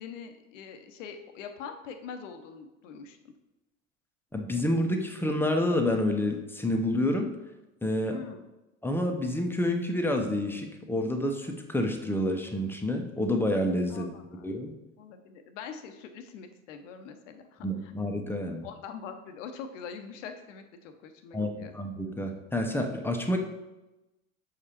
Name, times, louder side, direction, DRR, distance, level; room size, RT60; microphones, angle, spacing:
voice 1, 0.0-3.2 8.0-8.4 13.9-14.5 15.0-17.9 18.6-21.7, left 6 dB, 70° left, 7 dB, 0.8 m, -43 dB
voice 2, 4.3-7.3 7.8-8.2 8.8-14.1 14.4-14.7 17.6-18.6 21.3-23.4, left 1 dB, 5° left, 4 dB, 0.8 m, -28 dB
6.7 x 4.8 x 2.9 m, 1.0 s
hypercardioid pair, 70°, 39 cm